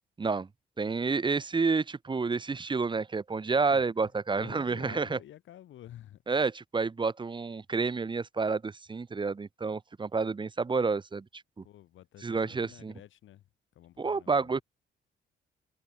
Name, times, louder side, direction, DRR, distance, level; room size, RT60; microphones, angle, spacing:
voice 1, 0.8-5.2 6.3-11.2 11.6-11.7 12.2-12.9 14.0-14.6, right 4 dB, 25° right, 0.9 m, -29 dB
voice 2, 3.7-4.1 4.4-6.2 11.6-13.4 13.8-14.6, left 12 dB, 75° left, 5.4 m, -50 dB
cardioid pair, 90°, 20 cm